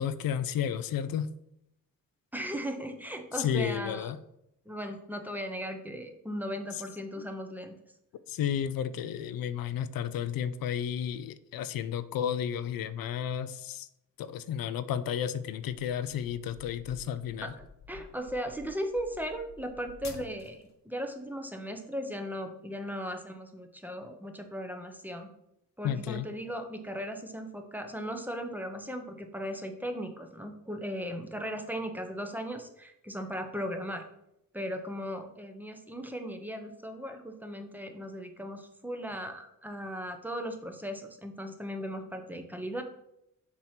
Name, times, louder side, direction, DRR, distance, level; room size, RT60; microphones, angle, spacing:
voice 1, 0.0-1.3 3.4-4.2 8.3-13.9 14.2-17.5 25.8-26.3, left 9 dB, 85° left, 13 dB, 0.5 m, -32 dB
voice 2, 2.3-4.1 4.7-7.7 17.4-25.3 25.8-34.0 34.5-42.8, equal, 5° right, 5 dB, 0.7 m, -37 dB
sound 1, 16.0-20.7, left 5 dB, 55° left, 1.0 m, -50 dB
7.4 x 2.9 x 5.8 m, 0.81 s
cardioid pair, 110°, 34 cm